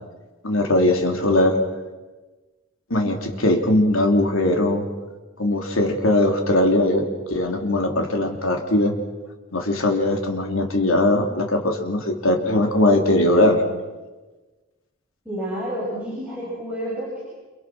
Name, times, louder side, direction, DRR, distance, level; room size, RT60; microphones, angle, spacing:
voice 1, 0.4-1.6 2.9-4.8 5.4-9.0 9.5-13.6, left 1 dB, 75° left, 3 dB, 3.3 m, -20 dB
voice 2, 15.2-17.2, equal, 5° right, -7 dB, 7.4 m, -29 dB
29.5 x 28.0 x 6.2 m, 1.2 s
head